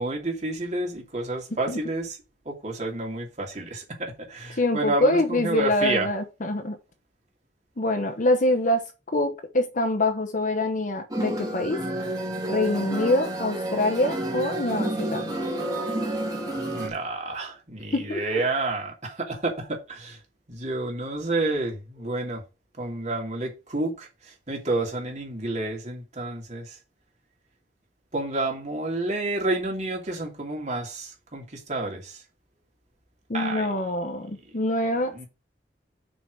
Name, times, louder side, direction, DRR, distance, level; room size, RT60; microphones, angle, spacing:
voice 1, 0.0-2.2 2.5-6.1 16.7-20.2 20.5-22.4 22.8-26.8 28.1-32.2 33.3-33.7 35.1-35.3, right 2 dB, 40° right, 2.6 m, -30 dB
voice 2, 4.5-6.8 7.8-11.8 12.5-15.3 17.9-18.4 33.3-35.2, left 1 dB, 50° left, 1.0 m, -25 dB
sound 1, 11.1-16.9, right 1 dB, 25° right, 2.4 m, -30 dB
6.1 x 5.1 x 6.3 m
head